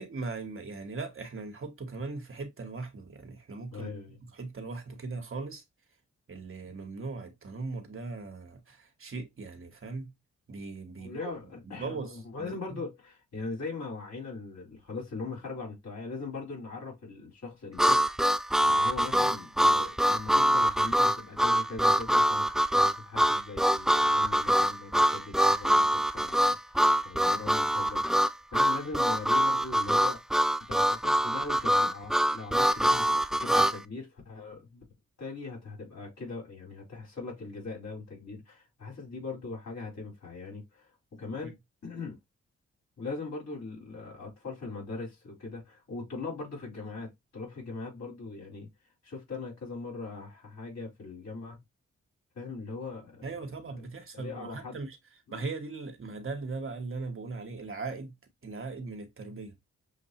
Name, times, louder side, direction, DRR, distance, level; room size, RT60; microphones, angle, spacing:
voice 1, 0.0-3.9 4.3-5.6 6.3-10.1 10.5-11.3 11.6-12.8 41.4-41.5 53.2-55.0 55.3-58.1 58.4-59.5, right 3 dB, 45° right, 1.3 m, -39 dB
voice 2, 3.7-4.2 11.0-30.2 30.7-34.8 35.2-41.6 41.8-42.2 43.0-48.7 49.0-51.6 52.3-53.4 54.1-54.8 55.3-55.4, left 3 dB, 70° left, 3.8 m, -40 dB
Harmonica, 17.8-33.8, equal, ahead, 0.4 m, -24 dB
6.6 x 2.5 x 2.9 m
supercardioid pair, 50°, 29 cm